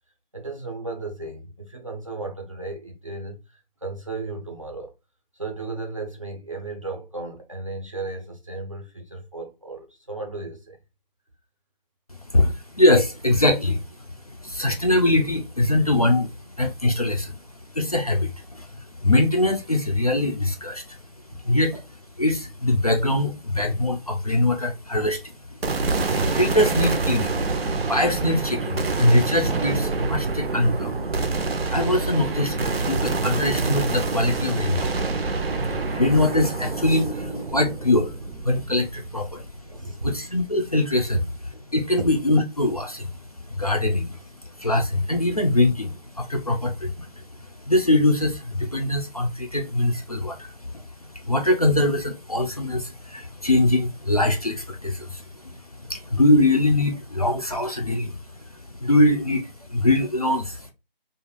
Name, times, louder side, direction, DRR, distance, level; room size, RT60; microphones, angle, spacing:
voice 1, 0.3-4.9 5.3-10.8 21.4-21.6 34.7-35.0 39.3-39.4 39.6-40.1 42.0-42.1, right 3 dB, 35° right, 0.5 m, -35 dB
voice 2, 12.3-17.4 17.7-21.0 21.4-21.8 22.2-25.8 26.2-31.0 31.6-35.1 35.6-41.2 41.7-43.1 43.4-60.7, left 1 dB, 40° left, 0.4 m, -23 dB
sound 1, 25.6-39.9, right 3 dB, 85° right, 0.6 m, -27 dB
2.5 x 2.3 x 3.0 m
figure-of-eight pair, 165°, 29 cm